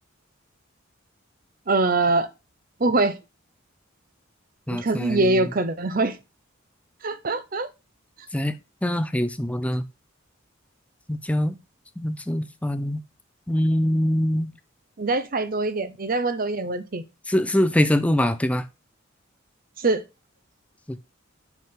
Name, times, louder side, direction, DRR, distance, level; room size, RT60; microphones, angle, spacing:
voice 1, 1.7-2.3 2.8-3.2 4.7-6.2 7.0-7.7 15.0-17.0 19.8-20.0, right 2 dB, 45° right, 0.8 m, -23 dB
voice 2, 4.7-5.4 8.3-8.5 8.8-9.8 11.1-11.6 12.0-13.0 13.5-14.5 17.3-18.6 20.9-21.0, left 1 dB, 5° left, 0.5 m, -23 dB
8.1 x 6.0 x 3.7 m
head